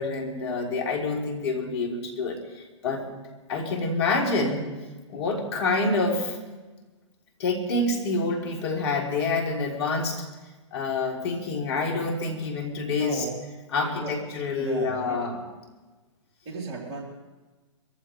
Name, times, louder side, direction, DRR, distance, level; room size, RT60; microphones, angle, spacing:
voice 1, 0.0-3.0 3.5-4.6 5.1-6.4 7.4-10.2 10.7-13.2 13.7-15.4, left 3 dB, 55° left, 1 dB, 3.7 m, -27 dB
voice 2, 12.9-13.4 13.8-14.1 14.6-15.3 16.4-17.0, right 3 dB, 40° right, -2 dB, 4.6 m, -35 dB
23.5 x 14.5 x 3.5 m, 1.2 s
figure-of-eight pair, 115°, 16 cm